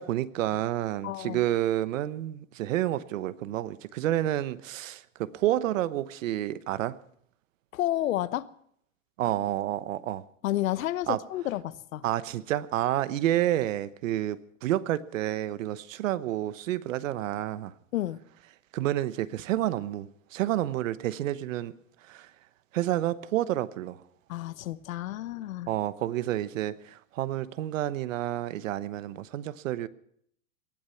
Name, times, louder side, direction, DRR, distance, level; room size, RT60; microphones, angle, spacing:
voice 1, 0.0-7.0 9.2-10.2 11.1-11.2 12.0-17.7 18.7-21.7 22.0-22.3 22.7-24.0 25.7-29.9, right 13 dB, 75° right, 1.1 m, -29 dB
voice 2, 1.0-1.4 7.7-8.5 10.4-12.0 17.9-18.2 24.3-25.7, left 14 dB, 85° left, 1.0 m, -30 dB
19.5 x 13.0 x 5.8 m
supercardioid pair, 155°, 39 cm